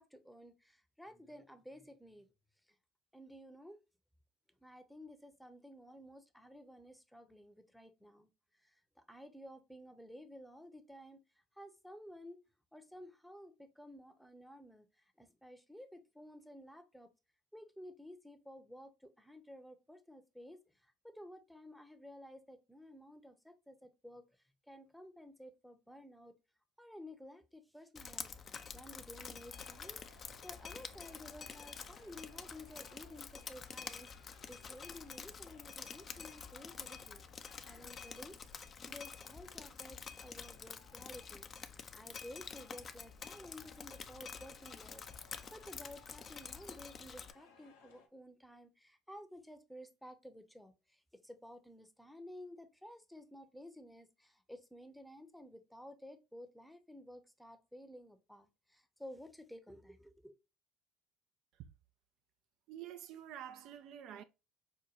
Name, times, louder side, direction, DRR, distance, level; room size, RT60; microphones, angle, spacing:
voice 1, 0.0-2.3 3.1-3.8 4.6-8.3 8.6-11.2 11.5-12.4 12.7-17.1 17.5-24.2 24.7-26.3 26.8-28.3 28.7-37.2 37.6-60.3, left 1 dB, ahead, 0.7 m, -54 dB
Drip, 28.0-47.3, left 6 dB, 40° left, 0.4 m, -48 dB
sound 1, 29.5-48.1, left 5 dB, 80° left, 0.7 m, -65 dB
voice 2, 62.7-64.2, right 10 dB, 60° right, 0.3 m, -48 dB
5.0 x 2.2 x 2.9 m
hypercardioid pair, 65°, 0 cm